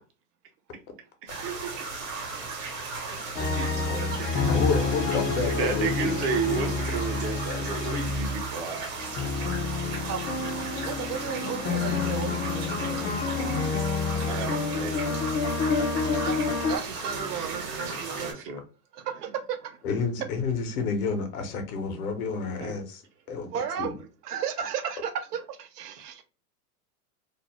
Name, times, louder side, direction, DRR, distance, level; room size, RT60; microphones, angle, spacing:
sound 1, 1.3-18.3, right 4 dB, 55° right, 1.0 m, -36 dB
voice 1, 1.4-1.7 3.1-4.9 10.0-13.1 14.2-14.7 16.2-18.4 18.9-19.8 23.5-26.2, right 8 dB, 85° right, 0.7 m, -35 dB
sound 2, 3.4-8.6 9.0-16.8, left 4 dB, 25° left, 0.5 m, -29 dB
voice 2, 3.5-4.5 5.6-8.9 14.1-15.0 17.0-18.6 22.6-22.7, right 4 dB, 30° right, 0.6 m, -32 dB
voice 3, 4.5-7.0 19.8-23.0 23.3-23.9, left 4 dB, 70° left, 0.9 m, -30 dB
2.6 x 2.0 x 3.0 m
hypercardioid pair, 120°, 45 cm